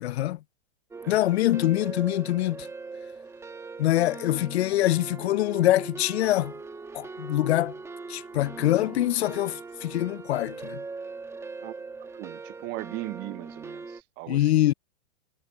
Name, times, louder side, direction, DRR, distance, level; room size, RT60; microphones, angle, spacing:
voice 1, 0.0-0.4 1.1-2.7 3.8-6.5 6.9-7.7 8.1-10.8 14.3-14.7, left 15 dB, 90° left, 0.5 m, -24 dB
sound 1, 0.9-14.0, right 4 dB, 10° right, 1.1 m, -40 dB
voice 2, 12.0-14.7, right 23 dB, 35° right, 0.5 m, -38 dB
hypercardioid pair, 130°, 32 cm